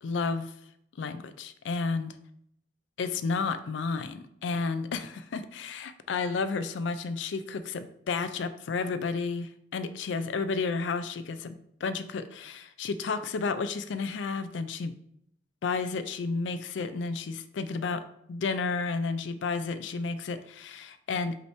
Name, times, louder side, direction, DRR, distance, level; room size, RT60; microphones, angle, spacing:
voice 1, 0.0-0.5 1.0-2.1 3.0-14.9 15.6-21.4, left 4 dB, 75° left, 11 dB, 0.4 m, -32 dB
5.4 x 3.0 x 3.2 m, 0.73 s
head